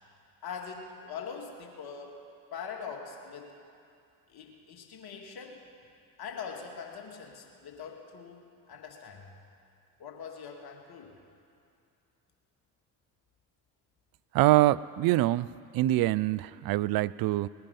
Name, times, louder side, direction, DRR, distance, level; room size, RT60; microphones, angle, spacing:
voice 1, 0.4-3.6 4.3-5.6 6.2-9.4 10.0-11.2, left 6 dB, 50° left, 1 dB, 2.3 m, -43 dB
voice 2, 14.3-15.5 15.7-17.5, right 16 dB, 50° right, 19 dB, 0.5 m, -24 dB
19.5 x 10.5 x 5.4 m, 2.5 s
hypercardioid pair, 55°, 47 cm